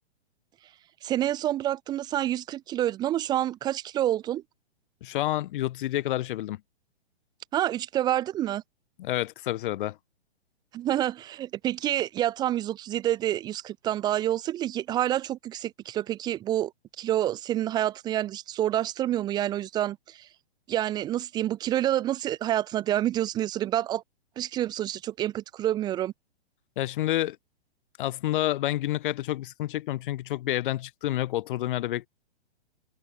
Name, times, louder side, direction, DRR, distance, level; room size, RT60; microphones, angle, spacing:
voice 1, 1.0-4.4 7.5-8.6 10.7-16.7 17.0-20.3 20.7-24.0 24.4-26.1, right 12 dB, 15° right, 0.5 m, -28 dB
voice 2, 5.0-6.6 9.0-10.0 26.8-27.4 28.0-32.1, left 14 dB, 50° left, 2.3 m, -29 dB
hypercardioid pair, 130°, 33 cm